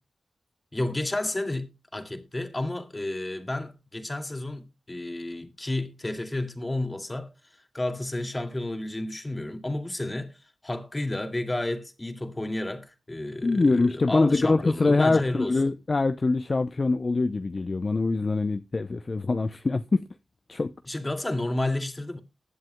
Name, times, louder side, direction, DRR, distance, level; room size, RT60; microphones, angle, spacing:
voice 1, 0.7-15.5 20.9-22.2, left 1 dB, 25° left, 2.2 m, -31 dB
voice 2, 13.4-20.0 20.5-20.7, left 3 dB, 45° left, 0.6 m, -24 dB
20.5 x 7.6 x 2.2 m
cardioid pair, 40°, 0 cm